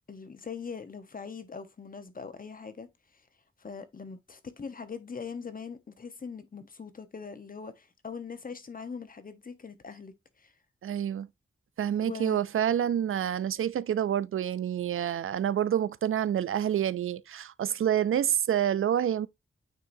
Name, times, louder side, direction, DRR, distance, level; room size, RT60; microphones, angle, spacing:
voice 1, 0.1-2.9 3.6-10.5 12.0-12.4, left 5 dB, 45° left, 1.1 m, -41 dB
voice 2, 10.8-11.3 11.8-19.3, right 10 dB, 85° right, 0.4 m, -28 dB
9.2 x 4.7 x 2.7 m
wide cardioid pair, 125°, 21 cm